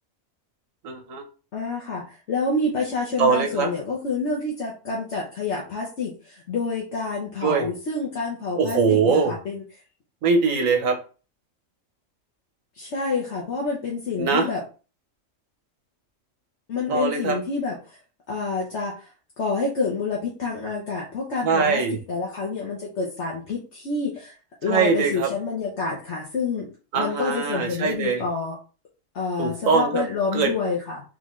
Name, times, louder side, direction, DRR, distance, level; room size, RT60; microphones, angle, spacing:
voice 1, 0.8-1.2 3.2-3.7 7.4-7.7 8.6-9.3 10.2-11.0 14.2-14.5 16.9-17.4 21.4-22.0 24.7-25.3 26.9-28.2 29.4-30.0 30.3-30.5, right 5 dB, 80° right, 4 dB, 1.3 m, -22 dB
voice 2, 1.5-9.6 12.7-14.6 16.7-17.8 18.3-19.1 19.4-21.8 22.1-24.3 24.6-26.7 26.9-28.6 29.1-31.0, left 4 dB, 60° left, -3 dB, 1.2 m, -28 dB
3.7 x 3.3 x 3.2 m, 0.35 s
omnidirectional pair, 1.4 m